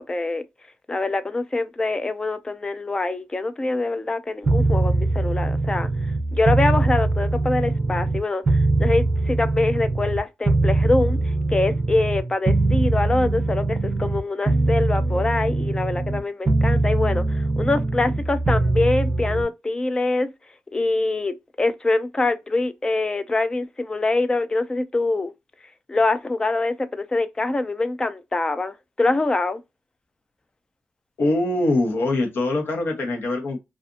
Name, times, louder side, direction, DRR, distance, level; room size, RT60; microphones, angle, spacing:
voice 1, 0.1-0.4 0.9-5.9 6.3-11.2 11.5-20.3 20.7-25.3 25.9-29.6, left 2 dB, 20° left, 0.4 m, -24 dB
sound 1, 4.4-8.2 8.5-14.2 14.5-16.2 16.5-19.4, right 2 dB, 35° right, 0.5 m, -22 dB
voice 2, 31.2-33.6, left 2 dB, 65° left, 1.0 m, -23 dB
2.5 x 2.5 x 2.4 m
wide cardioid pair, 125°, 4 cm